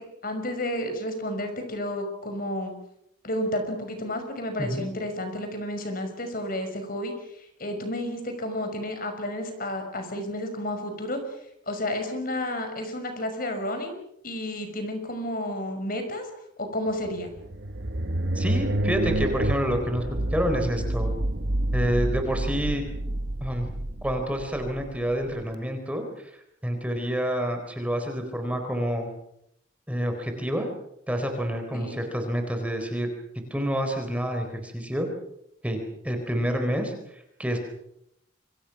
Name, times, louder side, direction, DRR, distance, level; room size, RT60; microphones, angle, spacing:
voice 1, 0.0-2.7 3.2-7.1 7.6-11.2 11.7-16.3 16.6-17.3 31.7-32.0, left 1 dB, 50° left, 6 dB, 5.8 m, -31 dB
sound 1, 17.1-25.4, right 1 dB, 60° right, 1.2 m, -28 dB
voice 2, 18.3-20.0 20.3-21.1 21.7-22.8 23.4-23.7 24.0-26.3 26.6-29.1 29.9-30.7 31.1-33.1 33.5-35.1 35.6-37.6, equal, 5° right, 5 dB, 4.2 m, -28 dB
28.5 x 24.5 x 6.0 m, 0.77 s
head